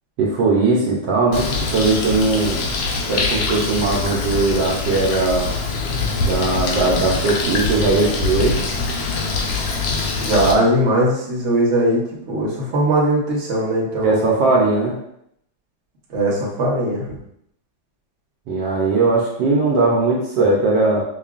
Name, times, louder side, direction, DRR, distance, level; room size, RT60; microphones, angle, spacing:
voice 1, 0.2-2.6 3.1-5.5 6.2-8.6 14.0-14.9 18.5-21.0, right 3 dB, 70° right, -3 dB, 1.3 m, -19 dB
Bird, 1.3-10.5, left 3 dB, 80° left, 1.4 m, -23 dB
voice 2, 10.2-14.4 16.1-17.1, right 1 dB, 45° right, -4 dB, 1.1 m, -19 dB
5.5 x 2.3 x 2.4 m, 0.75 s
omnidirectional pair, 2.1 m